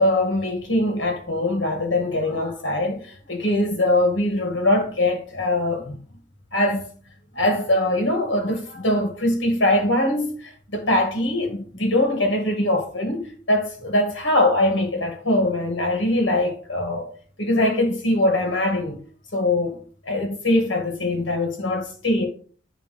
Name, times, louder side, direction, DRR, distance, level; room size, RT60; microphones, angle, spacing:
voice 1, 0.0-6.0 6.5-6.8 7.3-17.1 17.4-19.0 19.3-19.8 20.0-22.2, left 1 dB, 85° left, 1.7 m, -22 dB
9.5 x 3.4 x 3.1 m
head